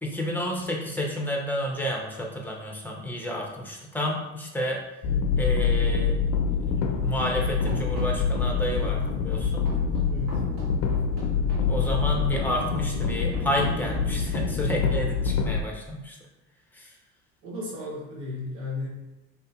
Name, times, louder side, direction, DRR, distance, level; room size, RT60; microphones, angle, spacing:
voice 1, 0.0-4.8 5.4-6.2 6.5-9.7 11.7-16.2 16.7-16.9, equal, 5° left, -1 dB, 0.6 m, -30 dB
sound 1, 5.0-15.6, left 5 dB, 55° left, 0.5 m, -26 dB
Run, 7.7-14.3, equal, 50° right, 1.2 m, -40 dB
voice 2, 10.0-10.5 17.4-18.9, left 2 dB, 80° right, -4 dB, 1.1 m, -34 dB
2.8 x 2.5 x 2.3 m, 1.0 s
hypercardioid pair, 65°, 42 cm